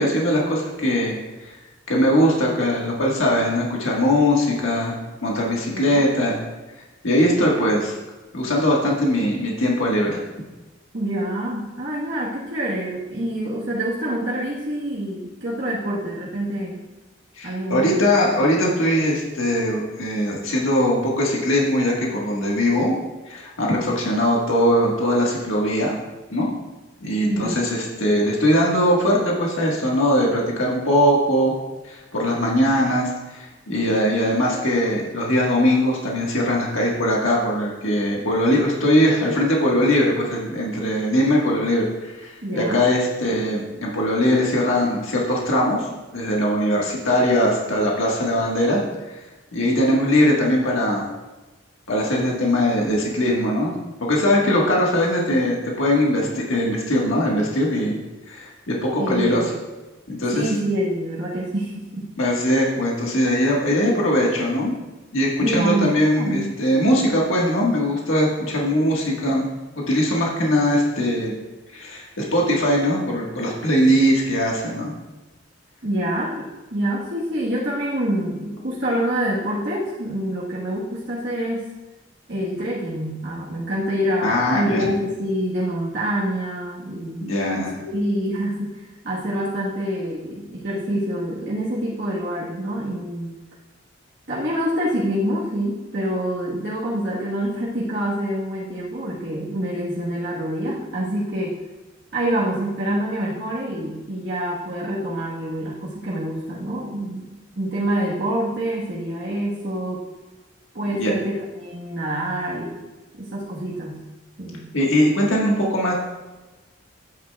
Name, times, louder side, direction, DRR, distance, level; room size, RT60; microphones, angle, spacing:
voice 1, 0.0-1.6 1.9-6.4 7.0-7.9 8.3-10.2 17.4-22.9 23.3-26.0 26.3-26.5 27.0-31.5 31.8-45.9 46.1-48.8 49.5-51.1 51.9-53.7 54.0-58.0 58.3-59.4 60.1-60.5 62.2-64.7 65.1-69.5 69.8-71.3 71.7-74.9 84.2-84.9 87.2-87.7 110.9-111.1 114.7-115.9, equal, 85° left, -3 dB, 1.6 m, -21 dB
voice 2, 5.7-6.1 10.9-16.8 17.4-17.9 27.3-27.7 42.4-42.9 59.0-59.5 60.3-62.1 65.4-66.5 75.8-81.7 82.3-87.2 87.5-93.3 94.3-101.6 102.1-110.1 110.7-112.8 113.1-114.0 114.4-114.7, right 1 dB, 60° right, -6 dB, 1.4 m, -26 dB
10.5 x 8.8 x 2.3 m, 1.2 s
head